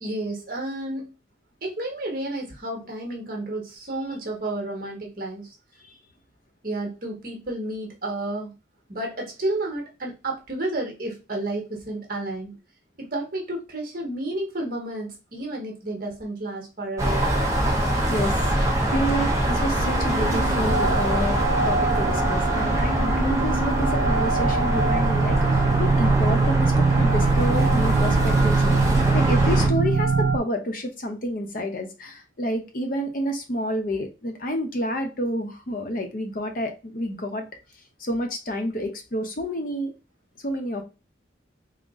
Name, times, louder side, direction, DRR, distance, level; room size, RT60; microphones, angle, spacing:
voice 1, 0.0-1.1 1.6-5.5 6.6-8.6 8.9-12.6 13.0-17.3, right 1 dB, 50° right, 1.2 m, -31 dB
sound 1, 17.0-29.7, right 1 dB, 15° right, 0.7 m, -23 dB
voice 2, 18.1-37.4 38.0-39.9 40.4-40.8, equal, 45° left, 0.6 m, -29 dB
sound 2, 19.1-30.4, right 4 dB, 65° right, 0.4 m, -24 dB
3.9 x 2.1 x 3.5 m
head